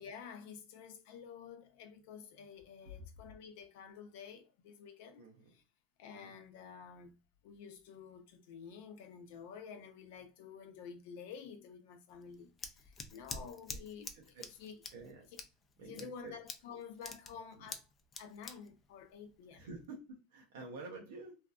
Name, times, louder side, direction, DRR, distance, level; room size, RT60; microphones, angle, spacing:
voice 1, 0.0-5.2 5.5-5.6 6.0-7.1 7.4-14.3 14.6-14.7 15.8-17.9 18.2-19.7, left 6 dB, 75° left, 0.6 m, -50 dB
voice 2, 5.2-5.5 6.1-6.4 13.3-13.5 14.1-14.4 14.9-15.3 15.8-16.3 16.7-16.8 17.6-17.7 19.5-21.4, right 3 dB, 85° right, 0.7 m, -49 dB
Scissors, 12.1-19.8, left 4 dB, 30° left, 0.5 m, -48 dB
2.7 x 2.3 x 2.3 m
supercardioid pair, 115°, 0 cm